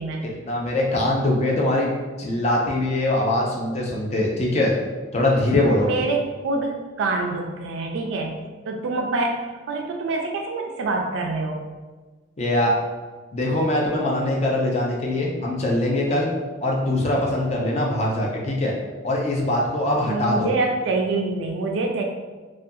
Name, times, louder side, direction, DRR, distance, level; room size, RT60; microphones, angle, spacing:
voice 1, 0.2-1.9 2.2-4.7 5.1-5.9 12.4-12.7 13.3-16.3 16.6-18.7 19.0-20.5, left 1 dB, 35° left, -2 dB, 0.4 m, -22 dB
voice 2, 5.8-8.4 8.7-11.6 20.1-22.0, right 3 dB, 90° right, 2 dB, 0.3 m, -26 dB
2.4 x 2.2 x 2.6 m, 1.3 s
head